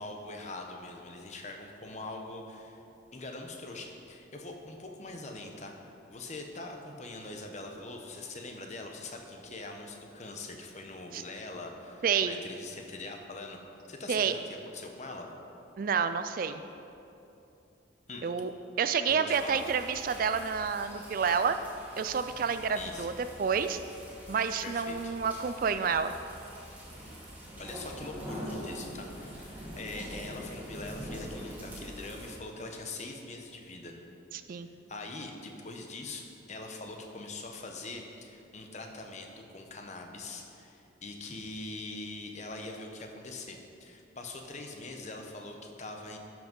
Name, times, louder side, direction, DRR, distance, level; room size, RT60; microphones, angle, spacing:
voice 1, 0.0-2.8 3.1-5.7 6.1-13.6 13.9-15.3 18.1-18.3 19.1-19.6 22.7-23.1 24.6-25.1 27.6-34.0 34.9-46.2, left 2 dB, 35° left, 3 dB, 1.0 m, -43 dB
voice 2, 12.0-12.4 14.1-14.3 15.8-16.6 18.2-18.5 18.8-21.6 22.0-23.1 23.4-23.8 24.3-26.1 34.3-34.7, right 6 dB, 45° right, 10 dB, 0.3 m, -29 dB
sound 1, 19.3-32.4, equal, 10° right, 2.2 m, -44 dB
13.0 x 6.1 x 5.3 m, 2.8 s
head